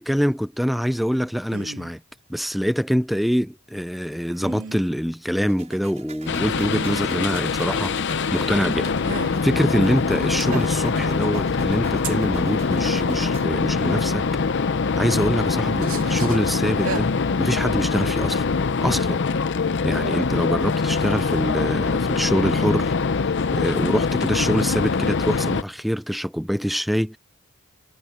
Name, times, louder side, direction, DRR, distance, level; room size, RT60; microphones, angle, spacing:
voice 1, 0.0-2.0 2.3-8.9 9.4-14.3 15.0-17.1 17.4-18.4 18.8-19.2 19.8-22.9 23.3-27.2, equal, ahead, 0.4 m, -25 dB
sound 1, 1.5-1.9 4.3-4.8 6.5-7.1 9.0-9.4 10.4-11.0 12.0-12.2 13.8-14.0 14.8-15.2 15.6-16.4 16.7-17.0, right 4 dB, 65° right, 2.3 m, -34 dB
sound 2, 5.4-13.4, right 3 dB, 30° right, 5.0 m, -42 dB
sound 3, 6.3-25.6, left 4 dB, 50° left, 0.6 m, -23 dB
head